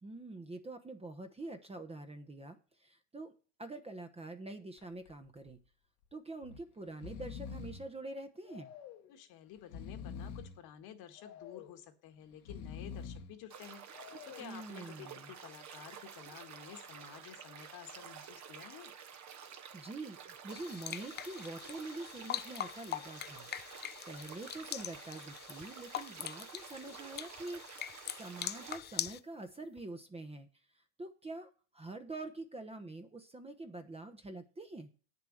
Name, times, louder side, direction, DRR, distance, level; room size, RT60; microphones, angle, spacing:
voice 1, 0.0-3.3 3.6-5.6 6.1-8.7 14.4-15.3 19.5-30.5 30.7-34.9, right 2 dB, 15° right, 7 dB, 1.1 m, -46 dB
Breathing, 4.8-5.1 5.5-5.6 6.4-6.6 6.9-7.9 8.5-9.1 9.6-10.6 11.2-11.8 12.3-13.3 13.9-14.6, left 6 dB, 75° left, 1.8 m, -46 dB
voice 2, 9.1-18.9, left 10 dB, 55° left, 6 dB, 1.8 m, -52 dB
sound 1, 13.5-28.8, right 7 dB, 40° right, 1.3 m, -51 dB
sound 2, 20.5-29.2, left 11 dB, 25° left, 0.4 m, -43 dB
8.8 x 7.0 x 6.5 m, 0.38 s
supercardioid pair, 105°, 45 cm